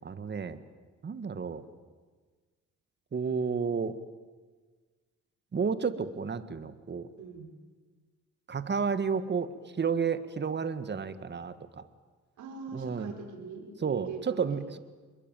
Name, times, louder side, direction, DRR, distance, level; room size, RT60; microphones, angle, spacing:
voice 1, 0.0-0.6 1.0-1.7 3.1-3.9 5.5-7.1 8.5-11.8 12.7-13.1 13.8-14.8, right 6 dB, 35° right, 12 dB, 1.7 m, -31 dB
voice 2, 7.2-7.5 12.4-14.6, right 5 dB, 75° right, 3 dB, 5.7 m, -42 dB
26.0 x 22.0 x 9.1 m, 1.4 s
cardioid pair, 90°, 30 cm